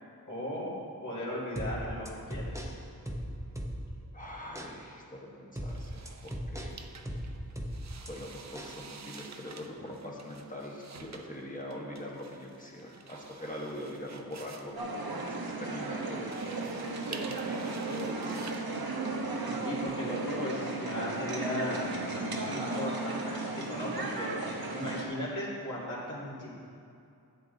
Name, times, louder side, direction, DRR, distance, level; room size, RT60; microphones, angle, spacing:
voice 1, 0.3-0.7 1.0-2.7 19.5-26.5, left 1 dB, 50° left, -8 dB, 2.5 m, -37 dB
sound 1, 1.6-4.1 4.6-4.7 5.6-8.1 8.6-8.8, equal, 10° right, 0.9 m, -38 dB
voice 2, 4.1-6.7 8.1-14.8 15.0-18.4, left 1 dB, 20° left, -3 dB, 1.3 m, -43 dB
sound 2, 5.7-20.2, right 5 dB, 45° right, 0.6 m, -50 dB
sound 3, 14.8-25.0, right 3 dB, 65° right, 1.1 m, -35 dB
10.5 x 8.2 x 4.0 m, 2.5 s
wide cardioid pair, 90°, 39 cm